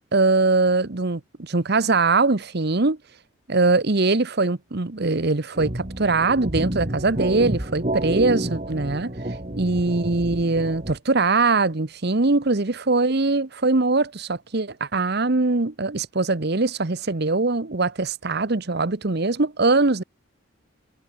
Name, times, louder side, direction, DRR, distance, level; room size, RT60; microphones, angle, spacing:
voice 1, 0.0-3.0 3.5-9.1 9.6-20.0, right 3 dB, 55° right, 1.1 m, -22 dB
sound 1, 5.5-11.0, right 1 dB, 35° right, 2.2 m, -29 dB
head